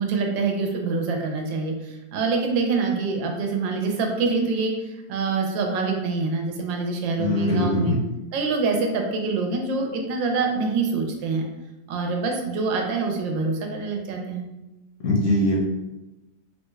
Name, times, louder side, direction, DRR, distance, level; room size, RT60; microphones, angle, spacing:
voice 1, 0.0-7.9 8.3-11.4 11.9-14.5, right 4 dB, 80° right, 2 dB, 1.3 m, -25 dB
voice 2, 7.2-8.0 15.0-15.6, left 1 dB, 55° left, -4 dB, 0.9 m, -21 dB
3.5 x 2.2 x 3.1 m, 1.0 s
omnidirectional pair, 2.0 m